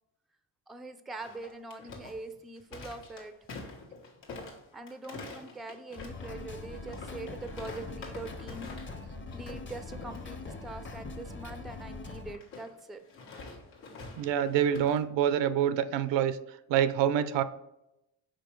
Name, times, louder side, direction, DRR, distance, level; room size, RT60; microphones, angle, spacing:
voice 1, 0.7-3.3 4.7-8.7 9.3-13.0, right 2 dB, ahead, 9 dB, 0.4 m, -43 dB
sound 1, 1.2-9.0 9.3-9.6 9.9-10.3 12.3-15.0, left 3 dB, 90° left, 1.4 m, -46 dB
sound 2, 5.9-12.3, left 3 dB, 25° left, 0.7 m, -42 dB
voice 2, 14.2-16.4 16.7-17.4, right 9 dB, 75° right, 13 dB, 0.6 m, -26 dB
5.2 x 4.4 x 4.5 m, 0.87 s
cardioid pair, 85°, 44 cm